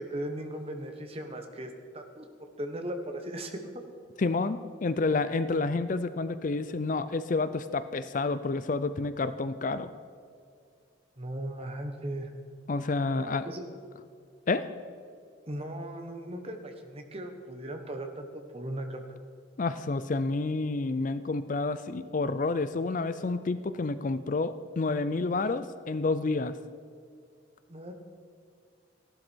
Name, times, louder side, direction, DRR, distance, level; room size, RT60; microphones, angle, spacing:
voice 1, 0.0-2.3 2.6-3.7 11.2-12.3 13.1-13.7 15.5-18.3 18.5-19.0 27.7-27.9, right 1 dB, 30° right, 5 dB, 1.2 m, -37 dB
voice 2, 4.2-9.9 12.7-13.5 14.5-14.7 19.6-26.6, left 3 dB, 40° left, 13 dB, 0.4 m, -29 dB
15.5 x 11.5 x 4.6 m, 2.2 s
head